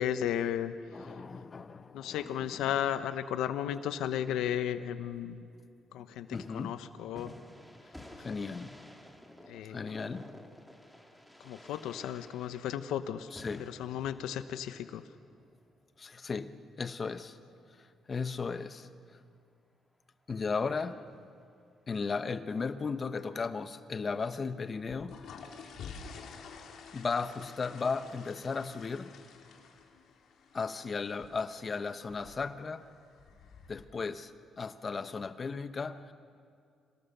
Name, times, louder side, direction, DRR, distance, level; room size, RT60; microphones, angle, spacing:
voice 1, 0.0-0.7 1.9-5.5 5.9-7.4 9.4-9.8 11.4-13.3 13.6-15.0, left 10 dB, 90° left, 0.9 m, -34 dB
voice 2, 0.9-2.7 6.3-6.8 8.2-8.9 9.7-10.3 13.3-13.7 16.0-17.4 17.7-19.2 20.3-21.0 21.9-25.3 26.9-29.1 30.5-32.9 33.7-36.1, left 4 dB, 35° left, 0.9 m, -36 dB
sound 1, 6.3-15.5 21.1-21.5, left 1 dB, 5° left, 2.2 m, -53 dB
sound 2, 24.8-33.8, left 6 dB, 70° left, 2.2 m, -50 dB
26.0 x 17.5 x 6.7 m
cardioid pair, 90°, 0 cm